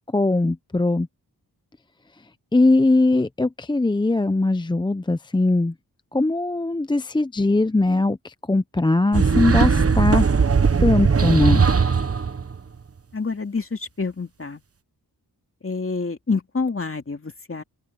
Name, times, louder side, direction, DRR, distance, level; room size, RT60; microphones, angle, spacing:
voice 1, 0.1-1.1 2.5-5.7 6.1-10.3 10.8-11.7, left 2 dB, 10° left, 0.5 m, -20 dB
sound 1, 9.1-12.6, right 5 dB, 35° right, 1.1 m, -19 dB
voice 2, 13.1-14.6 15.6-17.6, left 4 dB, 35° left, 2.6 m, -27 dB
open air
wide cardioid pair, 70°, 39 cm